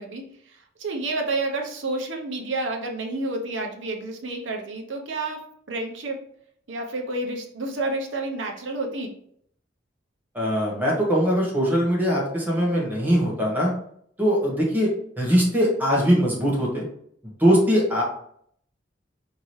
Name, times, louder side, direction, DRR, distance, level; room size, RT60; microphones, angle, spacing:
voice 1, 0.0-5.4 5.7-6.2 6.7-9.1, right 2 dB, 85° right, 2 dB, 0.8 m, -30 dB
voice 2, 10.3-13.7 14.2-14.9 15.2-16.8 17.4-18.0, equal, 10° right, -3 dB, 1.3 m, -21 dB
4.7 x 2.8 x 3.1 m, 0.66 s
head